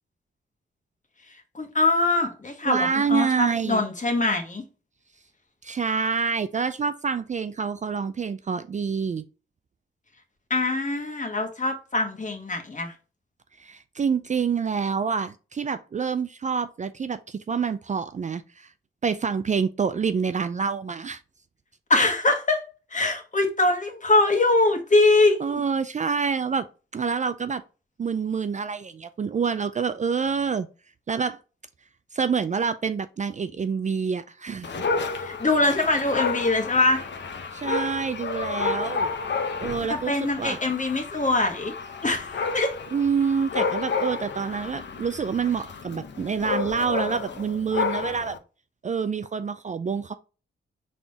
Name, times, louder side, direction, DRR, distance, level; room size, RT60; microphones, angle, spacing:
voice 1, 1.5-4.6 10.5-12.9 21.9-25.6 35.1-37.0 39.9-41.7 42.0-42.7, left 2 dB, 35° left, 1.4 m, -23 dB
voice 2, 2.7-3.9 5.6-9.2 13.6-18.7 19.0-21.2 25.4-26.7 26.9-27.6 28.0-30.7 31.1-31.4 32.1-34.8 37.5-39.1 39.6-40.6 42.9-48.4 48.8-50.1, right 6 dB, 35° right, 0.4 m, -27 dB
Dog, 34.6-48.4, left 4 dB, 60° left, 0.8 m, -31 dB
4.1 x 3.7 x 2.7 m
cardioid pair, 60°, 21 cm